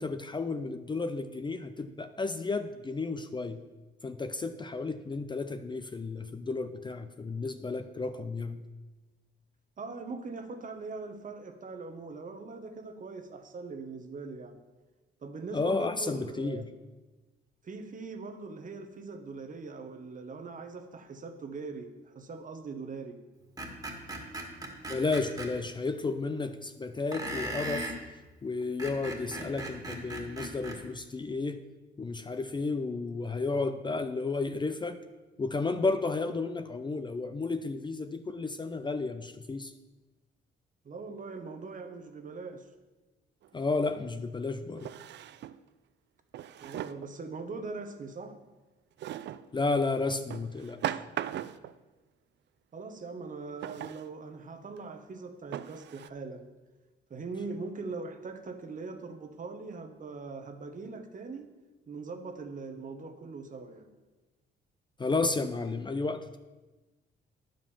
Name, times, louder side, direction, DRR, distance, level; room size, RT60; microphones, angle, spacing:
voice 1, 0.0-3.6 4.0-8.6 15.5-16.7 24.9-27.9 28.4-31.6 32.0-35.0 35.4-39.7 43.5-44.9 49.5-51.0 65.0-66.4, left 3 dB, 25° left, 9 dB, 0.5 m, -32 dB
voice 2, 9.8-14.6 15.2-16.7 17.6-23.2 40.8-42.7 46.6-48.4 52.7-56.5 57.1-61.5 61.9-63.9, right 4 dB, 40° right, 8 dB, 1.1 m, -41 dB
Screech, 23.6-25.5 27.1-28.0 28.6-30.8, right 1 dB, 20° right, 1.9 m, -38 dB
Drawer open or close, 43.4-43.5 44.8-45.6 46.3-47.1 49.0-49.5 50.3-51.8 53.6-54.1 54.8-54.9 55.5-56.1, right 11 dB, 65° right, 0.4 m, -38 dB
9.6 x 5.2 x 7.1 m, 1.2 s
cardioid pair, 90°, 20 cm